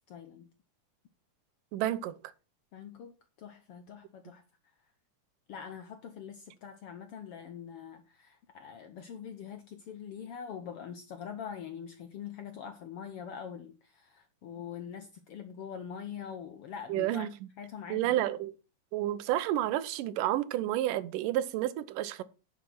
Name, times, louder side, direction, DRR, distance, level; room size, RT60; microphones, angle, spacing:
voice 1, 0.1-0.5 2.7-4.4 5.5-17.3 17.6-18.2, left 7 dB, 70° left, 1.4 m, -44 dB
voice 2, 1.7-2.2 16.9-17.3 17.9-18.5 18.9-22.2, right 13 dB, 85° right, 2.4 m, -30 dB
10.5 x 6.7 x 5.9 m
omnidirectional pair, 3.7 m